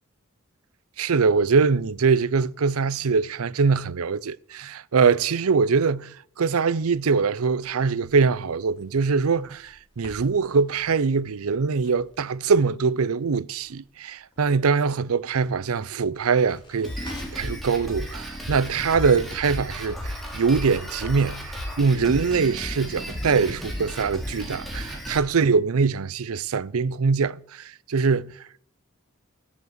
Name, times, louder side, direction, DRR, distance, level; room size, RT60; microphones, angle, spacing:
voice 1, 1.0-28.3, right 5 dB, 85° right, 0.5 m, -23 dB
Crackle, 6.7-17.6, equal, 20° left, 4.3 m, -49 dB
Drum kit, 16.8-25.2, equal, ahead, 2.9 m, -34 dB
16.0 x 7.2 x 7.9 m
head